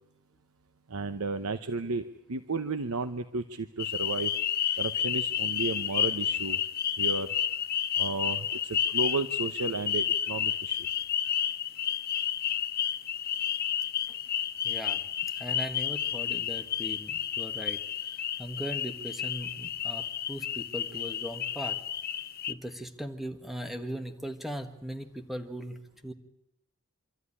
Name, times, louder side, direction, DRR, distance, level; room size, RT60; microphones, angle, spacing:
voice 1, 0.9-4.3 4.8-6.6 7.0-7.3 8.0-10.8, right 3 dB, 85° right, 10 dB, 0.9 m, -33 dB
sound 1, 3.8-22.5, left 9 dB, 45° left, 0.8 m, -31 dB
voice 2, 14.6-15.0 15.3-17.8 18.4-21.8 22.5-25.8 26.0-26.1, equal, ahead, 6 dB, 1.6 m, -39 dB
26.5 x 13.0 x 9.9 m, 0.86 s
head